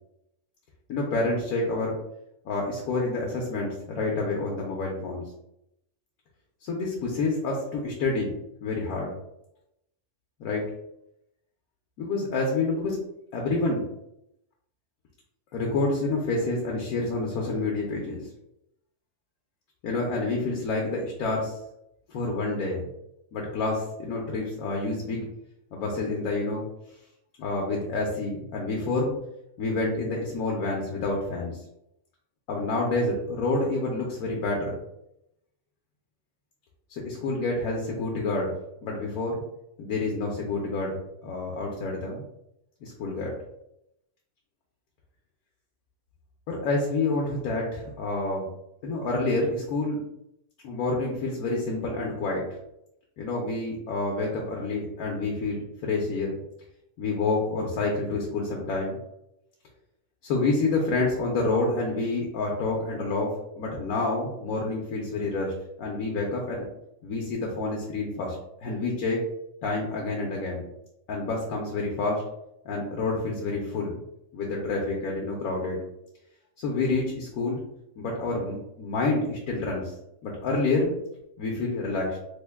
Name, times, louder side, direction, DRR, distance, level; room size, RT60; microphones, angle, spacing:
voice 1, 0.9-2.0 2.4-5.2 6.6-8.3 8.6-9.1 10.4-10.6 12.0-13.0 13.3-13.8 15.5-18.2 19.8-21.6 22.1-22.9 23.3-25.3 25.7-26.7 27.4-29.1 29.6-31.6 32.5-34.8 36.9-38.5 38.8-39.4 39.8-42.2 42.8-43.3 46.5-48.5 48.8-50.0 50.6-52.4 53.2-56.3 57.0-59.0 60.2-65.5 65.8-66.6 67.0-68.3 68.6-69.2 69.6-70.6 71.1-72.2 72.6-74.0 74.3-75.8 76.6-77.6 78.0-79.9 80.2-80.9 81.4-82.2, left 3 dB, 80° left, -2 dB, 1.1 m, -28 dB
3.4 x 2.2 x 3.3 m, 0.80 s
omnidirectional pair, 1.5 m